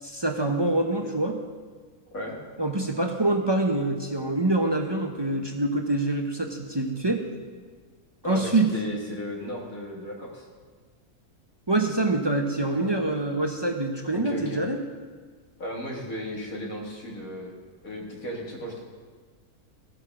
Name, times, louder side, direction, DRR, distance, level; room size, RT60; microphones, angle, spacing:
voice 1, 0.0-1.4 2.6-7.2 8.2-8.7 11.7-14.8, right 2 dB, 30° right, 4 dB, 0.5 m, -25 dB
voice 2, 8.2-10.5 12.7-12.9 14.1-14.6 15.6-17.5 17.8-18.8, equal, 65° left, -2 dB, 2.5 m, -35 dB
15.0 x 6.9 x 6.0 m, 1.5 s
omnidirectional pair, 1.6 m